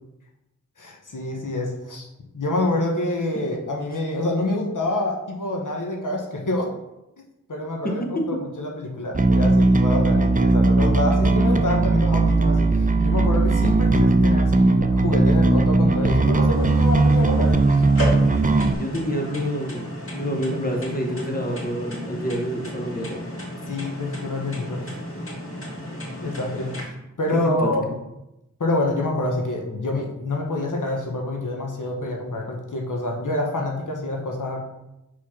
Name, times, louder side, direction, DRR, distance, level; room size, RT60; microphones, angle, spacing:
voice 1, 0.8-2.1 2.3-6.7 7.5-17.5 23.7-25.0 26.2-26.9 27.2-27.9 28.6-34.6, left 2 dB, 75° left, 0 dB, 1.1 m, -27 dB
voice 2, 7.8-8.2 18.7-19.9 20.1-23.2 27.4-28.0, equal, 30° left, 2 dB, 1.1 m, -28 dB
Bass guitar, 9.1-18.7, right 2 dB, 25° right, 0.5 m, -18 dB
sound 1, 16.5-26.8, equal, 45° left, 2.5 m, -33 dB
4.8 x 4.1 x 5.7 m, 0.91 s
wide cardioid pair, 40°, 31 cm